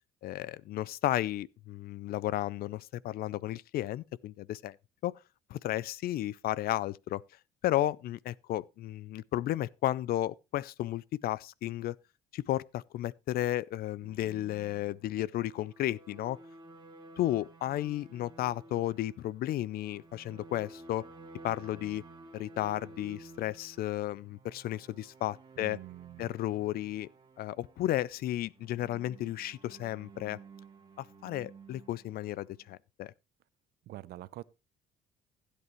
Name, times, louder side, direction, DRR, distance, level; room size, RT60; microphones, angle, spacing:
voice 1, 0.2-4.8 5.0-5.1 5.5-7.2 7.6-12.0 12.3-16.4 17.2-21.0 21.4-22.0 22.3-25.8 26.2-27.1 27.4-30.4 31.0-33.1, left 14 dB, 65° left, 0.5 m, -33 dB
sound 1, 14.0-32.8, right 2 dB, 25° right, 2.0 m, -54 dB
voice 2, 25.6-26.3 33.9-34.4, right 15 dB, 70° right, 0.6 m, -45 dB
15.5 x 8.3 x 3.1 m
cardioid pair, 110°, 17 cm